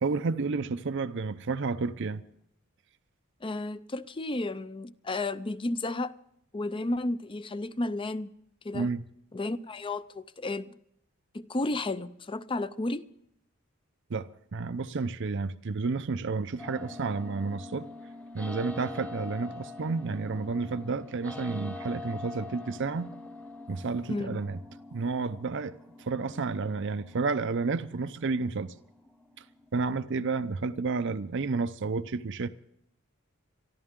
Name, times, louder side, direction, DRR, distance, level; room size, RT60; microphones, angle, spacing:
voice 1, 0.0-2.2 8.7-9.0 14.1-17.9 18.3-23.1 23.7-24.6 24.9-28.7 29.4-29.5 29.7-32.5, right 4 dB, 60° right, 0.6 m, -31 dB
voice 2, 3.4-6.1 6.5-8.3 8.6-8.9 9.3-10.7 11.3-13.1 24.1-24.4, left 2 dB, 25° left, 0.6 m, -32 dB
sound 1, 16.6-30.5, left 2 dB, 5° left, 0.9 m, -45 dB
23.5 x 14.0 x 3.7 m
head